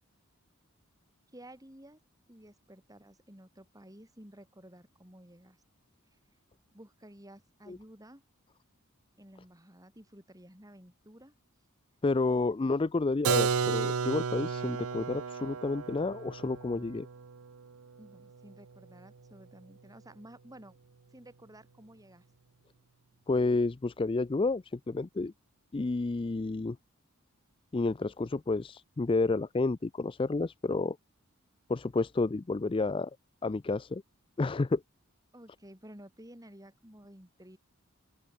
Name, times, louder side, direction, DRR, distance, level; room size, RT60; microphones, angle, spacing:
voice 1, 1.3-2.0 2.3-5.6 6.7-8.2 9.2-11.3 12.3-12.6 18.0-20.8 21.1-22.2 35.3-37.6, right 1 dB, 15° right, 5.4 m, -53 dB
voice 2, 12.0-17.1 23.3-25.3 25.7-26.8 27.7-31.0 31.7-33.1 33.4-34.0 34.4-34.8, left 3 dB, 25° left, 0.4 m, -30 dB
Keyboard (musical), 13.2-18.9, right 6 dB, 85° right, 0.7 m, -33 dB
open air
head